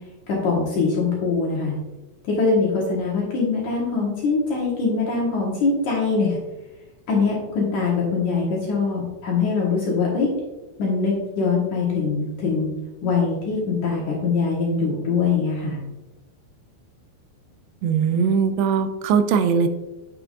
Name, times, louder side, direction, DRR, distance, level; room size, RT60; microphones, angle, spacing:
voice 1, 0.4-1.8 2.2-6.4 7.1-10.3 10.8-12.7 13.0-15.8, left 4 dB, 65° left, -4 dB, 2.2 m, -23 dB
voice 2, 17.8-19.7, right 6 dB, 90° right, 9 dB, 2.7 m, -20 dB
7.8 x 6.8 x 2.5 m, 1.1 s
omnidirectional pair, 4.8 m